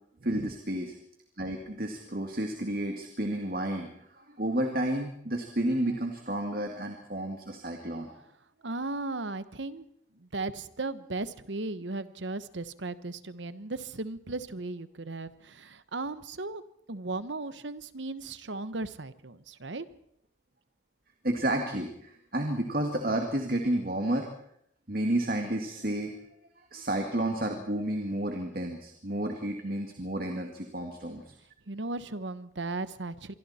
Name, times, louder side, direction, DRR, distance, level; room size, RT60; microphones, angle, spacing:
voice 1, 0.2-0.9 1.4-8.2 21.2-24.3 24.9-26.1 26.7-31.3, right 1 dB, 50° right, 3 dB, 2.2 m, -31 dB
voice 2, 8.6-9.8 10.1-16.6 16.9-19.9 31.7-33.3, right 2 dB, 85° right, 13 dB, 1.2 m, -36 dB
26.0 x 24.0 x 4.4 m, 0.71 s
head